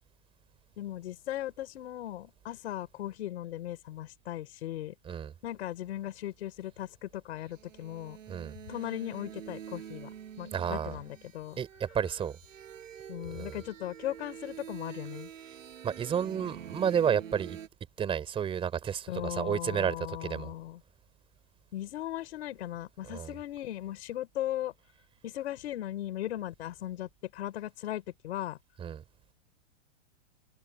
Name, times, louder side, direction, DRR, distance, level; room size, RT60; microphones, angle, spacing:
voice 1, 0.8-4.9 5.4-8.2 8.7-11.6 13.1-15.3 19.1-20.8 21.7-24.7 25.2-28.6, left 13 dB, 55° left, 4.8 m, -38 dB
sound 1, 7.4-17.7, right 9 dB, 80° right, 6.6 m, -46 dB
voice 2, 10.5-11.0 11.6-12.4 13.3-13.6 15.8-17.6 18.0-20.5 23.1-23.3 28.8-29.0, right 8 dB, 15° right, 3.7 m, -31 dB
hypercardioid pair, 160°, 38 cm